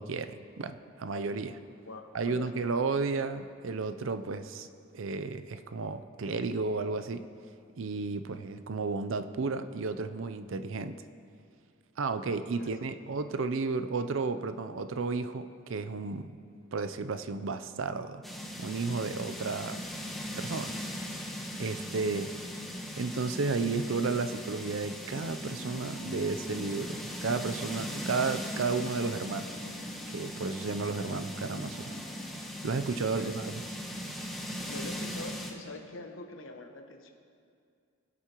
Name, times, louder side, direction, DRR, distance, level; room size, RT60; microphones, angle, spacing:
voice 1, 0.0-1.6 2.1-4.7 4.9-7.2 7.8-11.0 12.0-16.4 16.7-18.2 18.6-19.8 20.4-20.7 21.6-22.3 23.0-29.5 30.1-32.0 32.6-33.6, right 4 dB, 65° right, 11 dB, 0.5 m, -33 dB
voice 2, 1.8-2.7 12.6-12.7 22.0-22.2 33.2-33.4 34.6-37.1, left 2 dB, 65° left, 4 dB, 1.1 m, -44 dB
sound 1, 18.2-35.5, equal, ahead, 1.0 m, -39 dB
sound 2, 25.5-32.3, left 1 dB, 20° left, 1.8 m, -49 dB
23.0 x 8.2 x 3.0 m, 2.3 s
head